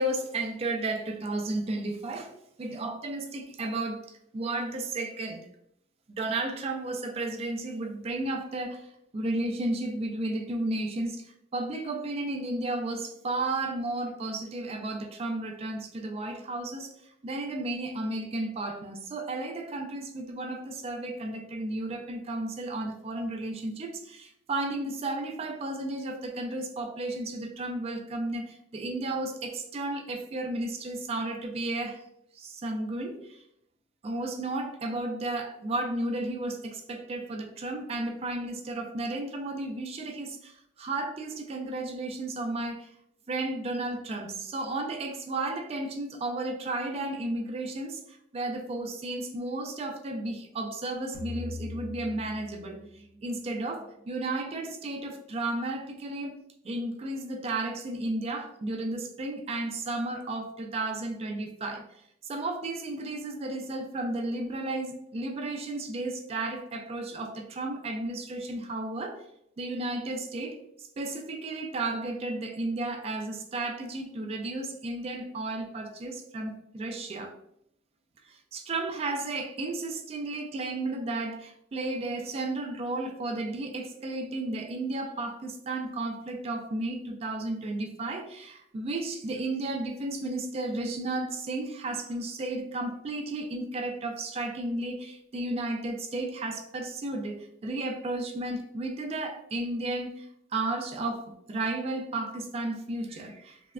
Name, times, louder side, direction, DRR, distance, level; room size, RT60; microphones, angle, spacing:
voice 1, 0.0-2.3 2.6-5.5 6.1-16.9 17.2-32.0 32.3-33.4 34.0-42.9 43.3-52.8 53.2-56.4 56.6-61.9 62.2-69.2 69.6-77.3 78.3-103.7, right 2 dB, 30° right, 5 dB, 0.3 m, -33 dB
sound 1, 51.1-54.4, left 3 dB, 85° right, 0.5 m, -41 dB
3.1 x 2.0 x 2.3 m, 0.74 s
head